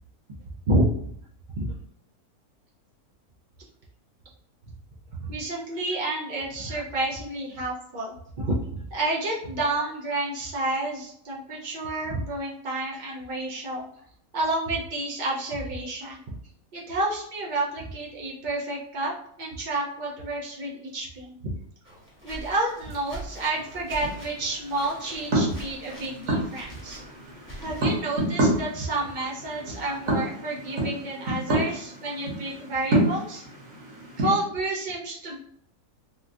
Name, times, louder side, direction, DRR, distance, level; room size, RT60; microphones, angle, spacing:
voice 1, 5.2-13.9 14.3-16.2 16.7-19.1 19.4-21.5 22.2-27.0 27.6-33.4 34.2-35.4, right 2 dB, 90° right, -5 dB, 0.4 m, -30 dB
sound 1, 21.8-28.3, right 1 dB, 10° right, 0.9 m, -44 dB
sound 2, 23.2-34.3, right 1 dB, 55° right, 1.3 m, -29 dB
3.7 x 2.3 x 2.5 m, 0.69 s
omnidirectional pair, 1.6 m